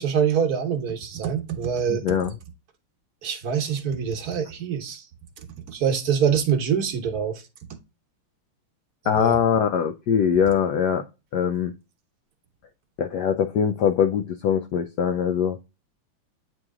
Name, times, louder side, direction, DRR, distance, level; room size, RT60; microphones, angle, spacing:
voice 1, 0.0-2.0 3.2-5.1 5.7-7.4 9.0-9.4, right 7 dB, 55° right, 1.2 m, -25 dB
voice 2, 1.9-2.3 9.1-11.0 11.3-11.7 13.0-15.6, left 8 dB, 85° left, 0.9 m, -22 dB
8.9 x 3.1 x 3.6 m
omnidirectional pair, 2.4 m